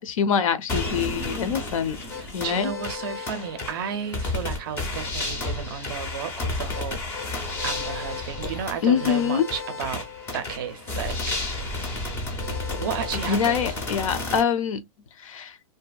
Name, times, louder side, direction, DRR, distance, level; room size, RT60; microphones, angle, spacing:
voice 1, 0.0-2.0 2.3-2.7 8.8-9.5 13.3-14.8 15.2-15.5, left 7 dB, 65° left, 0.6 m, -24 dB
sound 1, 0.7-14.4, left 2 dB, 10° left, 0.5 m, -31 dB
voice 2, 2.2-7.0 7.6-10.1 10.3-11.6 12.8-13.7, right 7 dB, 35° right, 0.5 m, -33 dB
2.7 x 2.4 x 2.2 m
hypercardioid pair, 165°, 19 cm